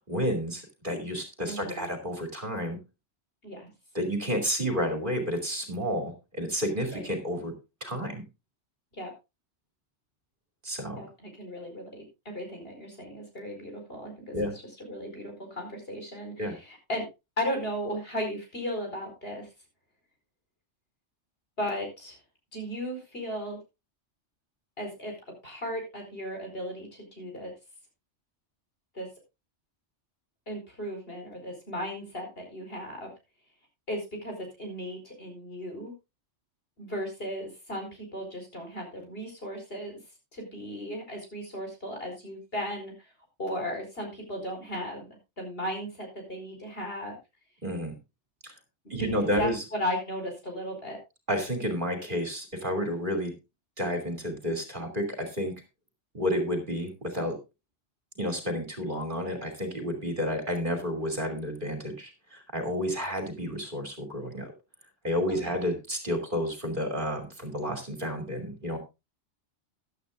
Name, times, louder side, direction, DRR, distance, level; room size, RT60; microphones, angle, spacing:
voice 1, 0.1-2.8 3.9-7.5 7.8-8.2 10.6-11.0 14.3-14.5 16.4-16.6 47.6-47.9 48.4-48.5 48.9-49.6 51.3-53.3 53.8-55.5 56.1-57.4 58.2-64.5 65.0-68.8, equal, 45° right, 5 dB, 3.0 m, -31 dB
voice 2, 1.4-1.9 3.4-3.7 6.9-7.1 8.9-9.1 10.9-14.4 14.8-17.1 17.4-19.5 21.6-22.2 22.5-23.6 24.8-25.1 25.4-27.5 28.9-29.1 30.5-33.1 33.9-35.9 36.8-39.9 40.3-43.1 43.4-47.2 48.8-48.9 49.2-51.0 65.4-65.6, equal, 55° left, 2 dB, 4.8 m, -36 dB
15.0 x 11.5 x 2.5 m, 0.25 s
omnidirectional pair, 1.2 m